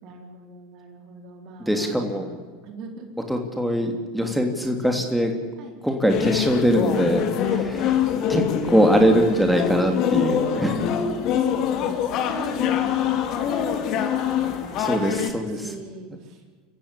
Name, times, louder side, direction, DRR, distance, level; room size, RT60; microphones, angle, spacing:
voice 1, 0.0-3.1 4.2-4.4 5.6-5.7 7.4-7.8 10.6-16.4, right 3 dB, 50° right, 4 dB, 4.7 m, -40 dB
voice 2, 1.7-2.3 3.3-5.3 5.8-7.3 7.7-7.8 8.3-10.7 14.7-15.7, equal, ahead, 3 dB, 3.0 m, -22 dB
sound 1, 6.1-15.3, left 9 dB, 50° left, 2.9 m, -24 dB
28.0 x 15.0 x 8.6 m, 1.5 s
hypercardioid pair, 85°, 0 cm